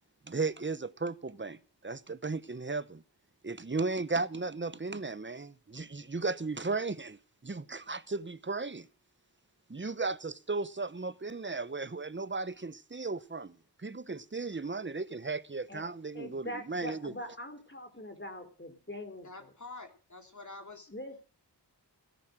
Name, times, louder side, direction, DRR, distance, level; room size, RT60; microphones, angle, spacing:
voice 1, 0.3-3.0 3.4-8.9 9.7-17.1, right 3 dB, 30° right, 0.9 m, -35 dB
voice 2, 16.1-19.5 20.9-21.3, left 1 dB, 25° left, 3.6 m, -43 dB
voice 3, 19.2-20.9, left 3 dB, 45° left, 3.4 m, -47 dB
17.0 x 10.5 x 6.3 m
wide cardioid pair, 70°, 41 cm